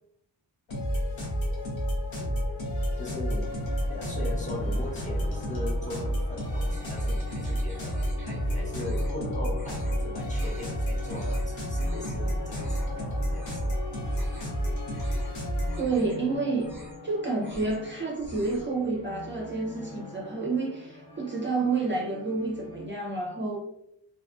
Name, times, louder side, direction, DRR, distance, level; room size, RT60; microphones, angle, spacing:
sound 1, 0.7-15.8, equal, 85° left, 0.9 m, -30 dB
voice 1, 2.7-3.6 3.9-13.8, left 1 dB, 15° left, -4 dB, 0.8 m, -39 dB
sound 2, 3.4-22.9, left 1 dB, 50° left, 1.2 m, -44 dB
sound 3, 6.7-8.4 8.7-9.2 9.5-10.0 10.3-10.7 11.1-11.5 11.8-12.2 12.5-12.9 13.3-13.7 14.0-14.6 14.9-15.3 15.7-16.2 16.5-17.1 17.4-17.9 18.1-18.7, right 1 dB, 5° right, 1.1 m, -46 dB
voice 2, 15.8-16.7 17.0-23.6, right 3 dB, 25° right, -4 dB, 0.5 m, -29 dB
2.8 x 2.4 x 2.3 m, 0.77 s
wide cardioid pair, 85°, 45 cm